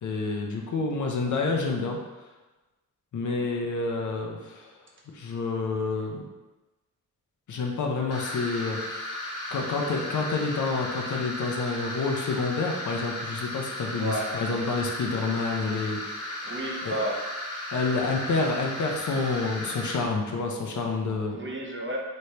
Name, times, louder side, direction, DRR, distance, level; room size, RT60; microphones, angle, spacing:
voice 1, 0.0-2.0 3.1-4.8 5.1-6.2 7.5-9.0 9.5-16.0 16.8-17.0 17.7-21.4, left 3 dB, 60° left, 1 dB, 0.6 m, -28 dB
sound 1, 8.1-19.9, left 1 dB, 45° left, 1.0 m, -35 dB
voice 2, 14.0-14.3 16.4-17.2 21.3-22.0, right 1 dB, 35° right, -1 dB, 0.6 m, -32 dB
3.2 x 3.1 x 2.7 m, 1.1 s
wide cardioid pair, 110°, 33 cm